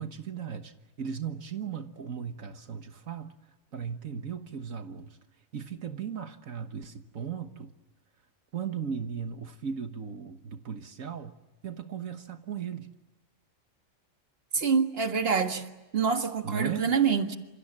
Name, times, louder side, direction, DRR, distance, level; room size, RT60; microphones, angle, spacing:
voice 1, 0.0-3.4 3.7-5.2 5.5-7.7 8.5-12.9 16.4-16.9, right 7 dB, 80° right, 1.7 m, -37 dB
voice 2, 14.5-15.7 15.9-17.4, right 6 dB, 45° right, 2.0 m, -26 dB
29.0 x 27.5 x 7.5 m
omnidirectional pair, 1.4 m